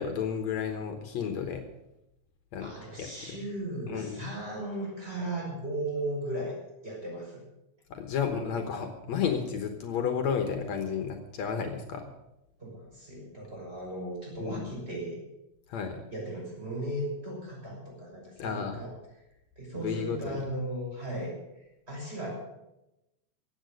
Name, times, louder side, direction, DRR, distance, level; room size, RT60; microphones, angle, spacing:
voice 1, 0.0-1.6 2.5-2.7 3.0-3.1 3.9-4.3 7.9-12.1 14.4-14.6 15.7-16.0 18.4-18.9 19.8-20.4, left 7 dB, 70° left, 6 dB, 2.4 m, -32 dB
voice 2, 2.6-6.6 6.8-7.4 12.6-15.2 16.1-18.9 19.6-21.3 21.9-22.3, right 1 dB, 20° right, -3 dB, 6.2 m, -36 dB
16.0 x 8.6 x 8.0 m, 0.91 s
omnidirectional pair, 3.4 m